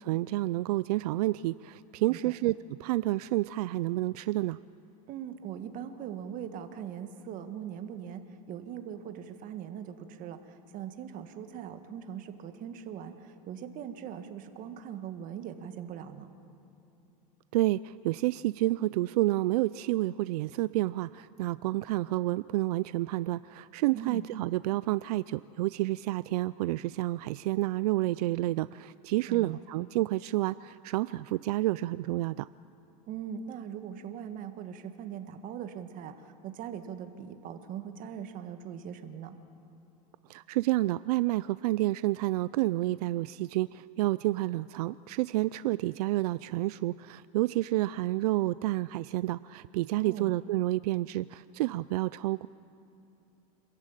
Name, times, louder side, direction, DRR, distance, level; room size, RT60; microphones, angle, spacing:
voice 1, 0.0-4.6 17.5-32.5 40.3-52.5, right 17 dB, 80° right, 17 dB, 0.4 m, -29 dB
voice 2, 5.1-16.3 23.9-24.3 29.3-29.6 33.1-39.4 49.9-50.3, right 8 dB, 45° right, 8 dB, 1.7 m, -41 dB
26.5 x 14.0 x 9.0 m, 2.9 s
supercardioid pair, 125°, 19 cm